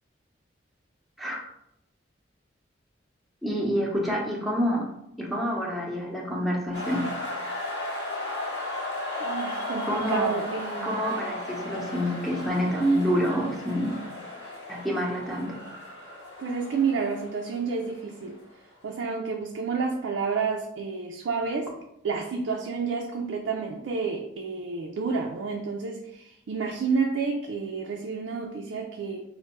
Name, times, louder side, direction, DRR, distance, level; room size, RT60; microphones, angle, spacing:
voice 1, 3.4-4.9 5.2-7.1 9.8-10.4 10.8-14.0 14.7-15.6, equal, ahead, -3 dB, 0.6 m, -27 dB
sound 1, 6.7-18.4, left 2 dB, 65° left, 1.2 m, -35 dB
voice 2, 9.2-11.0 16.4-18.4 18.8-21.7 22.0-29.2, right 5 dB, 85° right, 2 dB, 0.4 m, -30 dB
4.3 x 2.1 x 3.0 m, 0.81 s
head